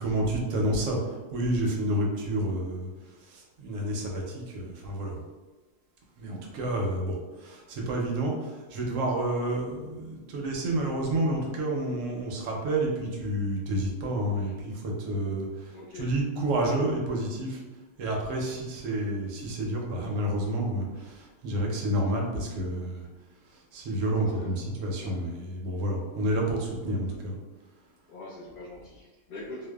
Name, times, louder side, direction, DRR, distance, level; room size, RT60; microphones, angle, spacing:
voice 1, 0.0-2.9 3.3-5.2 6.2-17.6 18.0-23.1 23.7-27.3, right 1 dB, 80° right, 0 dB, 0.9 m, -29 dB
voice 2, 15.7-16.1 24.2-25.2 28.1-29.7, left 2 dB, 50° left, -9 dB, 0.9 m, -44 dB
2.6 x 2.1 x 2.2 m, 1.2 s
omnidirectional pair, 1.3 m